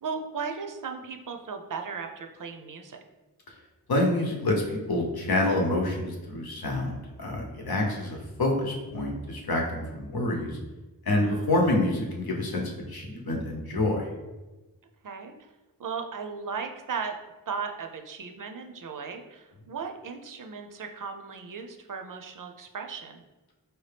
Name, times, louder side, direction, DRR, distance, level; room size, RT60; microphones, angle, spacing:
voice 1, 0.0-3.0 7.9-8.1 11.2-11.5 15.0-15.5 15.8-17.1 17.5-23.2, right 5 dB, 60° right, 5 dB, 0.5 m, -36 dB
voice 2, 3.9-6.9 7.2-10.6 11.1-14.1, left 2 dB, 75° left, 0 dB, 0.9 m, -27 dB
4.5 x 2.7 x 3.3 m, 1.1 s
wide cardioid pair, 75°, 37 cm